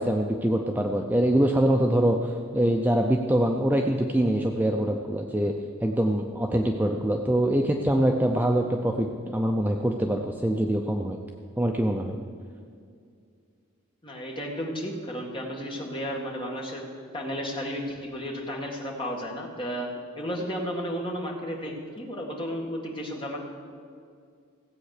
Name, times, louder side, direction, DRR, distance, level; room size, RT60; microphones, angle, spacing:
voice 1, 0.0-5.5 5.8-11.2 11.6-12.2, right 1 dB, 10° right, 2 dB, 0.5 m, -24 dB
voice 2, 14.0-16.9 17.1-19.9 20.2-23.4, equal, 25° left, -1 dB, 1.9 m, -33 dB
16.0 x 8.4 x 6.6 m, 2.3 s
head